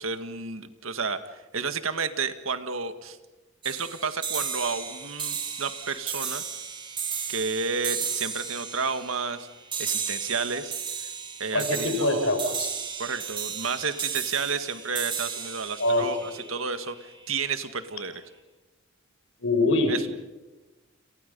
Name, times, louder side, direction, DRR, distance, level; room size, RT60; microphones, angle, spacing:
voice 1, 0.0-3.2 3.6-6.4 7.3-9.5 9.8-10.7 11.4-12.3 13.0-18.2 19.9-20.0, right 5 dB, 85° right, 10 dB, 1.9 m, -31 dB
sound 1, 3.6-17.1, right 6 dB, 25° right, 3.1 m, -34 dB
voice 2, 11.5-12.7 15.8-16.4 19.4-20.2, left 2 dB, 65° left, 6 dB, 5.7 m, -24 dB
29.5 x 28.0 x 5.5 m, 1.1 s
head